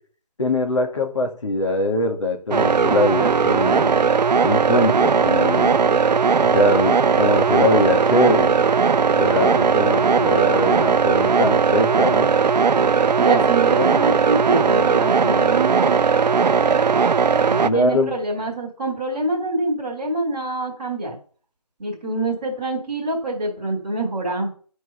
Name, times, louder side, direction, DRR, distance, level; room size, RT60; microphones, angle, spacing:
voice 1, 0.4-4.0 4.4-5.8 6.4-8.5 9.2-12.3 17.6-18.2, left 1 dB, 45° left, 3 dB, 2.0 m, -22 dB
sound 1, 2.5-17.7, right 5 dB, 85° right, 0.5 m, -18 dB
voice 2, 9.7-10.5 13.2-16.0 17.4-21.2 21.8-24.5, right 2 dB, 15° right, -6 dB, 2.3 m, -25 dB
11.5 x 4.6 x 5.7 m, 0.42 s
figure-of-eight pair, 175°, 21 cm